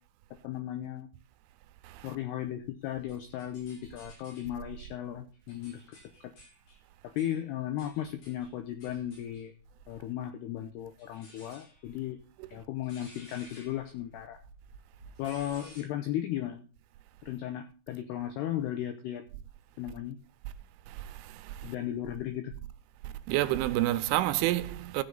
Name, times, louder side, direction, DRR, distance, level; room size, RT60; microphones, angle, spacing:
voice 1, 0.4-1.1 2.0-6.0 6.2-6.3 7.2-9.5 9.9-12.2 12.5-14.4 15.2-16.6 17.2-19.2 19.8-20.2 21.6-22.5, left 12 dB, 90° left, 2.3 m, -36 dB
sound 1, 2.5-4.6 5.1-10.2 11.0-15.8, equal, 50° left, 8.6 m, -55 dB
voice 2, 20.9-21.7 23.0-25.0, right 15 dB, 85° right, 3.1 m, -30 dB
15.5 x 6.8 x 3.9 m
omnidirectional pair, 5.8 m